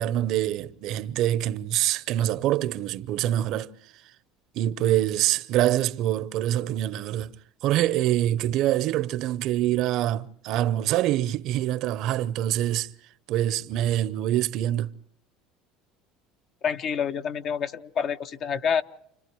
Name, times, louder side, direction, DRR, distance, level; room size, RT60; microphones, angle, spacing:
voice 1, 0.0-3.7 4.5-7.3 7.6-12.9 13.3-14.9, right 13 dB, 60° right, 0.7 m, -25 dB
voice 2, 16.6-18.8, left 7 dB, 50° left, 1.0 m, -27 dB
29.5 x 28.5 x 3.1 m
supercardioid pair, 110°, 0 cm